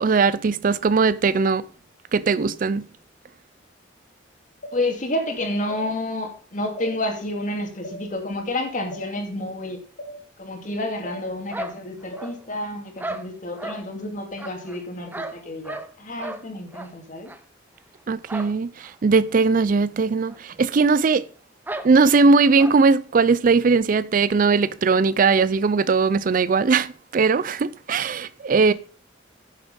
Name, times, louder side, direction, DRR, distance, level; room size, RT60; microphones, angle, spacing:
voice 1, 0.0-1.6 2.1-2.9 18.1-21.3 21.8-28.7, right 4 dB, 45° right, 0.4 m, -19 dB
sound 1, 4.6-4.8 5.7-5.9 6.8-6.9 7.8-8.0 8.9-9.1 10.0-10.1 11.1-11.2 12.1-12.3, right 1 dB, 75° left, 2.9 m, -37 dB
voice 2, 4.7-9.8 10.4-17.3 28.5-28.7, left 1 dB, 45° left, 2.4 m, -30 dB
sound 2, 11.5-12.6 13.0-13.8 14.4-15.9 16.2-16.4 16.7-16.9 17.3-17.4 18.3-18.6 18.8-18.9 19.3-19.4 20.3-20.4 20.6-20.7 21.7-21.9 22.6-22.8, right 1 dB, 10° right, 0.8 m, -34 dB
10.5 x 7.1 x 5.5 m
head